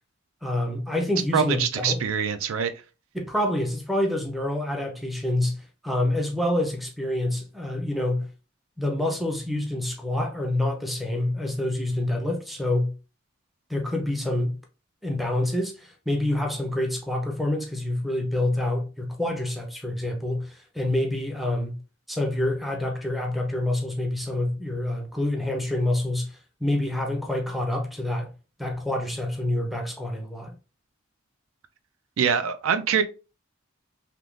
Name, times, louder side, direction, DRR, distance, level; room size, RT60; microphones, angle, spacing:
voice 1, 0.4-2.0 3.1-8.3 8.8-12.9 13.7-14.6 15.0-21.8 22.1-28.3 28.6-30.5, left 1 dB, ahead, 0.5 m, -27 dB
voice 2, 1.3-2.7 32.2-33.0, right 7 dB, 80° right, 0.4 m, -24 dB
3.5 x 2.9 x 2.4 m
head